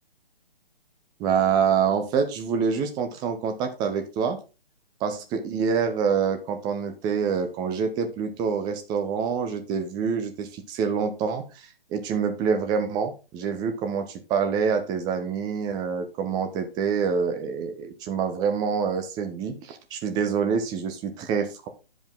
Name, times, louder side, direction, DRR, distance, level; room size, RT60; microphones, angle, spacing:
voice 1, 1.2-4.4 5.0-21.7, right 6 dB, 15° right, 6 dB, 0.9 m, -26 dB
10.5 x 5.1 x 3.8 m, 0.31 s
figure-of-eight pair, 135°, 30 cm